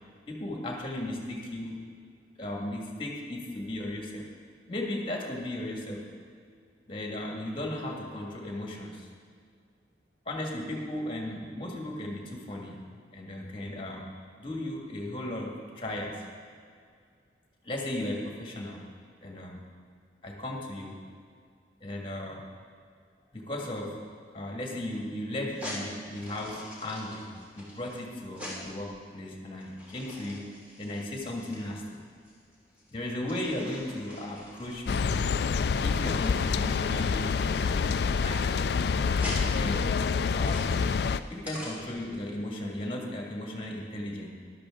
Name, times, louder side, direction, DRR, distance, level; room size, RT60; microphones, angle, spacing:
voice 1, 0.3-1.8 2.4-4.3 4.7-6.0 6.9-9.1 10.3-14.1 14.4-16.1 17.6-18.8 19.2-19.6 20.2-21.0 21.8-22.4 23.3-23.9 24.3-30.5 30.8-32.0 32.9-35.2 35.8-38.5 39.0-39.9 40.3-40.7 41.3-44.3, left 1 dB, 30° left, -1 dB, 1.9 m, -36 dB
sound 1, 25.4-42.1, left 1 dB, 10° right, 3.2 m, -44 dB
sound 2, 34.8-41.2, left 5 dB, 60° left, 0.3 m, -27 dB
13.5 x 12.0 x 3.7 m, 2.1 s
head